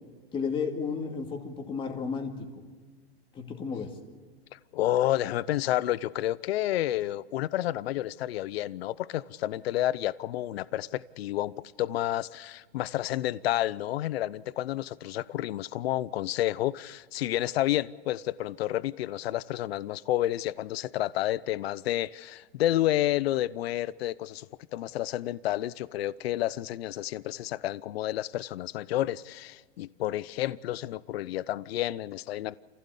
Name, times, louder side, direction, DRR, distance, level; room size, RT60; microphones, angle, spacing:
voice 1, 0.3-2.6 3.3-3.9, left 5 dB, 15° left, 2.3 m, -33 dB
voice 2, 4.5-24.5 24.7-32.6, left 14 dB, 70° left, 0.7 m, -30 dB
28.5 x 16.0 x 8.4 m
supercardioid pair, 160°, 32 cm